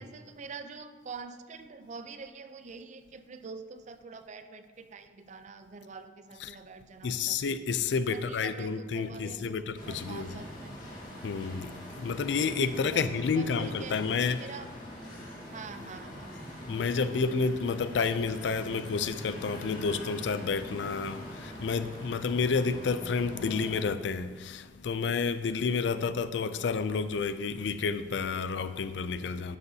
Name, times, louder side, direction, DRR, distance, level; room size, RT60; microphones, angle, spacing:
voice 1, 0.0-7.4 8.1-11.0 12.8-14.7 15.5-16.3 16.7-17.3 25.9-26.3, right 4 dB, 45° right, 0.5 m, -45 dB
voice 2, 7.0-10.3 11.2-14.4 16.7-29.6, left 5 dB, 85° left, 0.4 m, -30 dB
sound 1, 9.8-23.8, equal, 50° left, 2.2 m, -43 dB
11.0 x 6.8 x 2.8 m
head